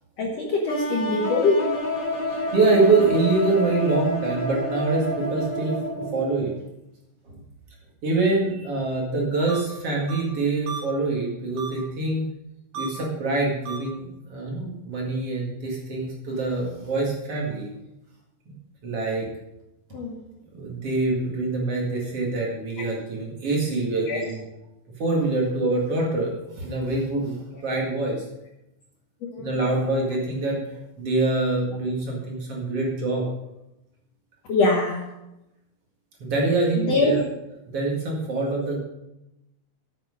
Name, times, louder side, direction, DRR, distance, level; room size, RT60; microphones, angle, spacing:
voice 1, 0.2-1.7 19.9-20.2 24.1-24.2 29.2-29.6 34.5-35.0 36.8-37.2, left 3 dB, 60° left, 0 dB, 1.9 m, -23 dB
sound 1, 0.7-6.5, left 1 dB, 30° left, 3.0 m, -29 dB
voice 2, 2.3-6.5 7.2-7.4 8.0-12.3 12.7-17.7 18.8-19.3 20.5-24.4 25.0-28.2 29.4-30.7 31.0-33.3 36.2-37.2 37.7-38.8, right 3 dB, 45° right, -2 dB, 2.7 m, -25 dB
sound 2, 9.5-9.6 10.1-10.2 10.7-10.8 11.6-11.7 12.7-12.9 13.7-13.8, right 5 dB, 70° right, 3.7 m, -33 dB
8.9 x 8.1 x 6.3 m, 0.92 s
omnidirectional pair, 4.1 m